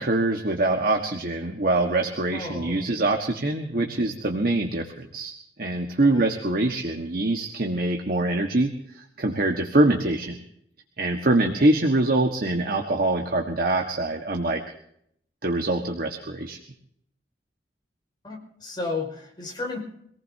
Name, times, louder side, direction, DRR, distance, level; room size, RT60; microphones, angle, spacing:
voice 1, 0.0-5.3 5.6-10.4 11.0-14.6 15.4-16.6, right 2 dB, 55° right, 3 dB, 1.5 m, -24 dB
voice 2, 2.3-2.9 3.7-3.9 6.0-6.4 18.2-19.8, left 3 dB, 25° left, 0 dB, 5.3 m, -33 dB
26.0 x 18.5 x 2.8 m, 0.70 s
head